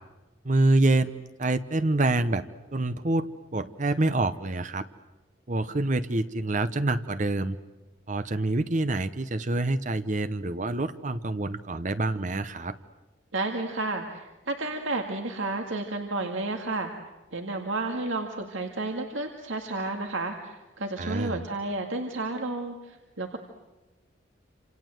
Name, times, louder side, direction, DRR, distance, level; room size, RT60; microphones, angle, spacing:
voice 1, 0.4-2.4 2.7-3.3 3.5-4.9 5.5-7.6 8.1-12.8 21.0-21.4, right 2 dB, 40° right, 11 dB, 0.9 m, -26 dB
voice 2, 13.3-16.9 17.3-23.4, right 2 dB, 80° right, 4 dB, 2.1 m, -31 dB
27.5 x 27.5 x 7.9 m, 1.1 s
head